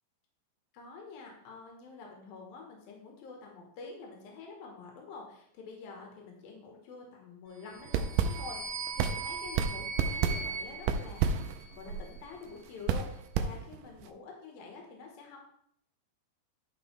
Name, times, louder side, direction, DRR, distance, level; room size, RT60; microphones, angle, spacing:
voice 1, 0.7-11.4 11.7-15.4, left 4 dB, 80° left, 0 dB, 3.3 m, -47 dB
sound 1, 7.6-12.0, right 4 dB, 20° right, 1.4 m, -40 dB
sound 2, 7.8-14.1, right 6 dB, 80° right, 2.0 m, -32 dB
11.0 x 6.2 x 3.4 m, 0.69 s
omnidirectional pair, 4.2 m